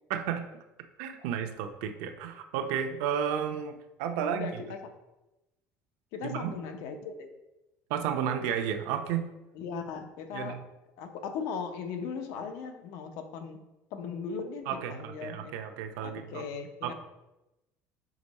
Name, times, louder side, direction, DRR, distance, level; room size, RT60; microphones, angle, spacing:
voice 1, 0.1-0.4 1.0-4.6 6.3-6.5 7.9-9.3 10.3-10.6 14.7-16.4 16.8-16.9, right 8 dB, 90° right, 5 dB, 0.7 m, -32 dB
voice 2, 4.2-4.9 6.1-7.3 9.5-10.6 11.0-13.6 13.9-15.6 16.0-16.9, left 6 dB, 70° left, 6 dB, 0.8 m, -38 dB
5.2 x 5.1 x 4.1 m, 0.98 s
cardioid pair, 155°, 6 cm